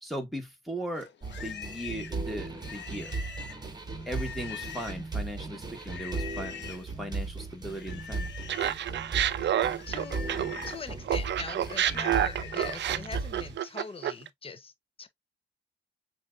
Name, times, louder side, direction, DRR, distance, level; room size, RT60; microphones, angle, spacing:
voice 1, 0.0-3.2 4.1-8.3, equal, ahead, 1.5 m, -38 dB
Livestock farm animals working animals, 0.9-5.2 5.8-6.9 7.7-8.8 9.2-12.9, left 7 dB, 60° left, 0.8 m, -44 dB
sound 1, 1.2-13.6, right 3 dB, 20° right, 1.2 m, -37 dB
Laughter, 8.5-10.8 11.1-14.3, right 11 dB, 60° right, 0.5 m, -29 dB
voice 2, 9.4-10.3 10.7-14.7 15.0-15.1, left 5 dB, 25° left, 0.7 m, -42 dB
7.3 x 2.5 x 2.4 m
cardioid pair, 110°, 21 cm